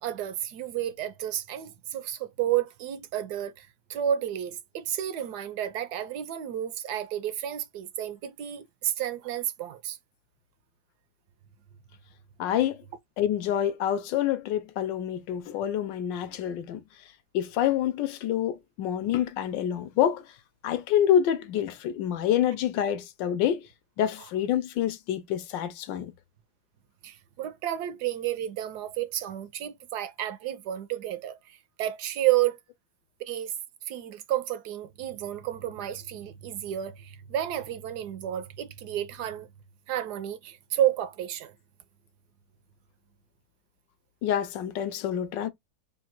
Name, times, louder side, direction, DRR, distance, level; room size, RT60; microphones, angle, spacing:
voice 1, 0.0-10.0 27.0-32.6 33.2-33.5 33.9-39.5 39.9-41.5, right 11 dB, 70° right, 1.0 m, -31 dB
voice 2, 12.4-12.8 13.2-16.8 17.3-20.2 20.6-23.6 24.0-26.1 44.2-45.5, left 10 dB, 75° left, 1.2 m, -27 dB
3.7 x 2.3 x 4.4 m
omnidirectional pair, 2.1 m